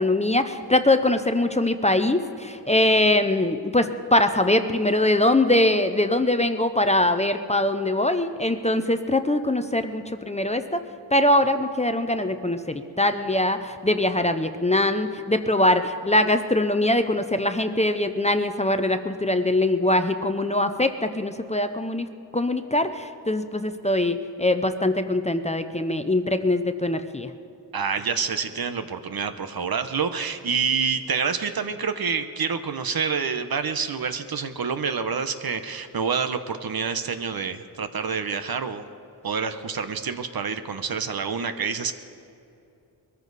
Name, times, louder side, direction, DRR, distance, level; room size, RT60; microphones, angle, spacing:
voice 1, 0.0-10.8 11.1-22.1 22.3-27.3, left 1 dB, 15° left, 8 dB, 0.6 m, -22 dB
voice 2, 27.7-38.8 39.2-41.9, right 6 dB, 65° right, 9 dB, 0.9 m, -27 dB
22.5 x 14.0 x 4.1 m, 2.8 s
wide cardioid pair, 125°, 40 cm